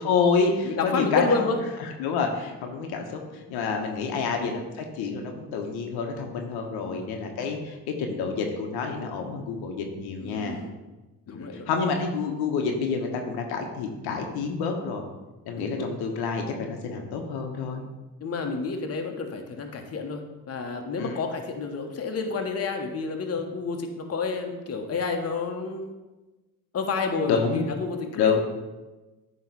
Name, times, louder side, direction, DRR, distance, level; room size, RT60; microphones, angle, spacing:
voice 1, 0.0-1.4 1.8-10.6 11.3-15.1 15.5-17.8 21.0-21.1 27.3-27.6 28.2-28.4, left 5 dB, 85° left, 3 dB, 1.0 m, -28 dB
voice 2, 0.6-1.6 4.0-4.2 6.8-7.1 10.2-10.8 11.3-11.7 15.6-15.9 18.2-20.2 20.5-25.9 26.7-28.4, left 4 dB, 40° left, 3 dB, 1.0 m, -30 dB
9.2 x 3.1 x 4.5 m, 1.1 s
supercardioid pair, 80°, 37 cm